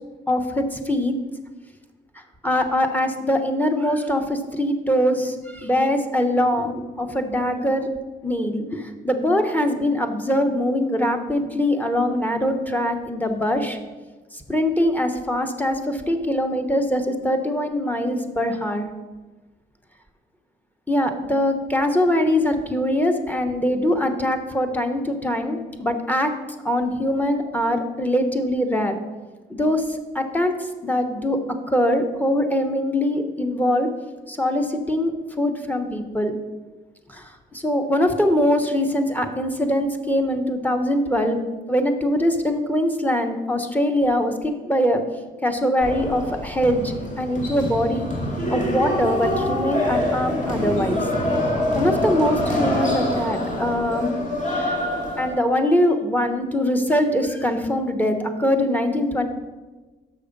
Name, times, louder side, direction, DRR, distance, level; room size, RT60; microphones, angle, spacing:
voice 1, 0.3-1.1 2.4-7.9 8.2-13.8 14.3-18.9 20.9-26.3 26.6-28.9 29.5-31.4 31.7-33.9 34.3-35.1 35.4-36.3 37.1-41.4 41.7-45.0 45.4-48.1 48.5-51.1 51.7-54.1 54.5-54.8 55.2-59.3, left 1 dB, 10° left, 5 dB, 1.0 m, -22 dB
sound 1, 45.8-55.3, left 1 dB, 40° left, 2.0 m, -25 dB
6.5 x 6.3 x 5.2 m, 1.2 s
cardioid pair, 80°, 20 cm